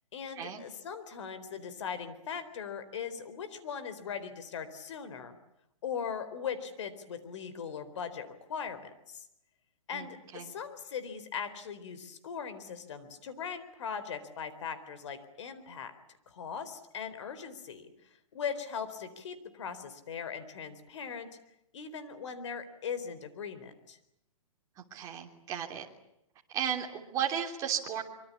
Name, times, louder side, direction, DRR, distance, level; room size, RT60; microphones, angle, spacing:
voice 1, 0.1-5.4 5.8-9.2 9.9-15.9 16.3-17.9 18.3-21.3 21.7-24.0, left 7 dB, 55° left, 11 dB, 4.1 m, -39 dB
voice 2, 24.9-25.8 26.5-28.0, right 9 dB, 20° right, 1 dB, 3.2 m, -34 dB
25.0 x 24.0 x 8.5 m, 0.81 s
hypercardioid pair, 160°, 18 cm